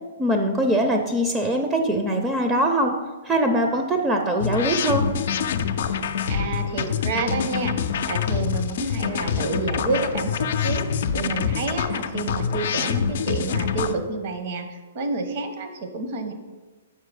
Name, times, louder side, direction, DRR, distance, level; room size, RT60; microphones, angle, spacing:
voice 1, 0.2-2.9 3.2-5.1, right 1 dB, 15° right, 3 dB, 0.6 m, -22 dB
sound 1, 4.4-14.0, left 7 dB, 60° left, 0.4 m, -26 dB
voice 2, 6.3-7.8 8.1-10.8 11.1-16.3, right 3 dB, 55° right, 6 dB, 0.9 m, -29 dB
5.7 x 4.7 x 4.8 m, 1.3 s
hypercardioid pair, 130°, 0 cm